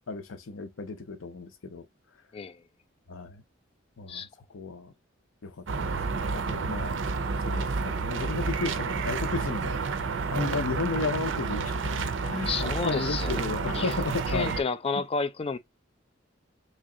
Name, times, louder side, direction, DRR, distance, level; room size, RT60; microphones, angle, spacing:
voice 1, 0.1-1.9 3.1-3.4 4.0-4.9 5.4-6.9 7.4-9.8 10.3-14.6 14.9-15.0, left 3 dB, 85° left, 0.7 m, -34 dB
sound 1, 5.7-14.6, right 4 dB, 70° right, 0.5 m, -30 dB
voice 2, 12.5-13.3 13.7-13.9 14.3-15.6, left 4 dB, 30° left, 0.3 m, -31 dB
3.1 x 2.8 x 3.7 m
head